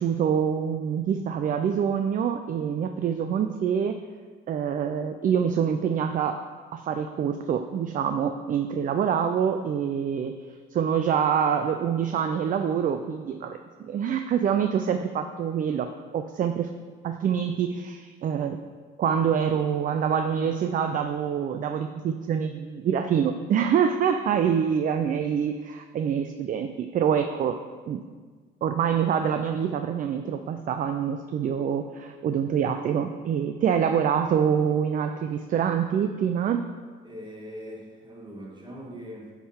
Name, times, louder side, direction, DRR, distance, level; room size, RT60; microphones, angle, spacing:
voice 1, 0.0-4.0 4.5-6.4 6.7-10.3 10.7-13.6 13.8-15.9 16.1-16.7 17.0-18.6 19.0-27.6 27.9-28.0 28.6-36.6, right 8 dB, 40° right, 7 dB, 0.4 m, -25 dB
voice 2, 24.7-25.1 37.0-39.3, equal, 20° right, -2 dB, 1.8 m, -42 dB
10.0 x 3.7 x 4.3 m, 1.5 s
supercardioid pair, 90°, 21 cm